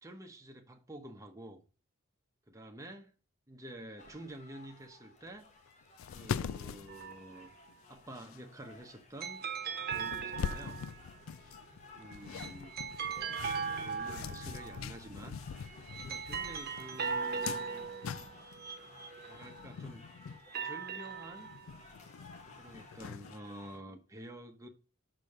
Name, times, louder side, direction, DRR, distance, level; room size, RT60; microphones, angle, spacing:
voice 1, 0.0-1.6 2.5-3.1 3.5-5.5 6.1-7.5 7.9-9.4 9.8-10.8 11.4-11.5 11.9-12.8 13.6-17.9 19.2-20.0 20.6-21.5 22.6-24.7, right 1 dB, 15° right, 0.9 m, -49 dB
sound 1, 4.0-23.8, left 3 dB, 35° left, 1.3 m, -57 dB
sound 2, 5.7-5.8 6.0-7.8 8.2-8.4 9.4-9.5 9.9-18.7 19.3-20.4 20.8-20.9 21.2-23.4, left 7 dB, 65° left, 0.3 m, -43 dB
sound 3, 6.9-7.6 9.2-11.2 12.1-14.9 15.6-19.7 20.3-21.9, right 6 dB, 45° right, 1.1 m, -39 dB
6.0 x 5.2 x 6.5 m
head